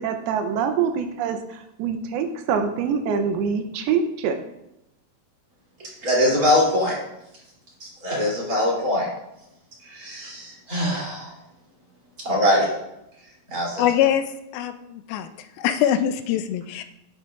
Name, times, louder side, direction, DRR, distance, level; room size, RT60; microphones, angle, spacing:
voice 1, 0.0-4.4, right 6 dB, 85° right, 7 dB, 2.6 m, -25 dB
voice 2, 6.0-7.0 7.8-9.1 9.8-11.3 12.2-12.7 13.5-13.8, left 1 dB, 25° right, -5 dB, 3.1 m, -22 dB
voice 3, 13.8-14.3 14.5-15.3 15.6-16.8, left 10 dB, 80° left, 9 dB, 2.3 m, -23 dB
10.5 x 7.8 x 2.5 m, 0.86 s
omnidirectional pair, 4.5 m